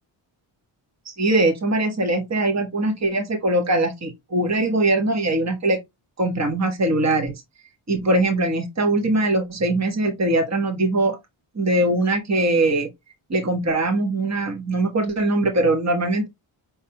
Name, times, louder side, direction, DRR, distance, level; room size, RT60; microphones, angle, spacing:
voice 1, 1.0-5.8 6.2-7.3 7.9-11.2 11.5-12.9 13.3-16.3, right 2 dB, 35° right, 1.3 m, -21 dB
5.7 x 3.5 x 2.2 m
wide cardioid pair, 80°, 49 cm